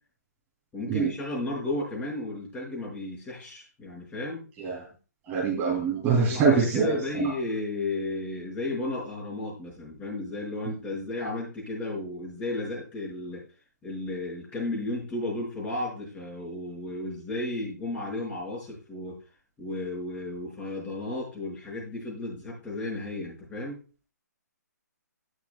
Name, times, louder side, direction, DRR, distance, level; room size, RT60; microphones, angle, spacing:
voice 1, 0.7-4.4 6.1-13.4 13.8-19.2 19.6-23.8, left 2 dB, 15° left, -4 dB, 5.4 m, -33 dB
voice 2, 5.3-7.3, right 5 dB, 20° right, -3 dB, 3.1 m, -24 dB
18.0 x 6.4 x 2.3 m, 0.36 s
hypercardioid pair, 140°, 10 cm